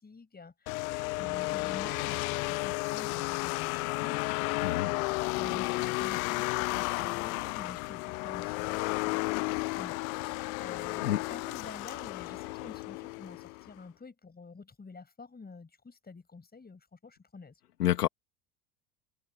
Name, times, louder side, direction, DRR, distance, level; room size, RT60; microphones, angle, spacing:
voice 1, 0.0-4.3 5.3-17.5, left 4 dB, 20° left, 7.4 m, -48 dB
sound 1, 0.7-13.7, left 26 dB, 65° left, 0.7 m, -33 dB
voice 2, 4.6-4.9 11.0-11.2 17.8-18.1, left 12 dB, 85° left, 2.5 m, -28 dB
hypercardioid pair, 75°, 45 cm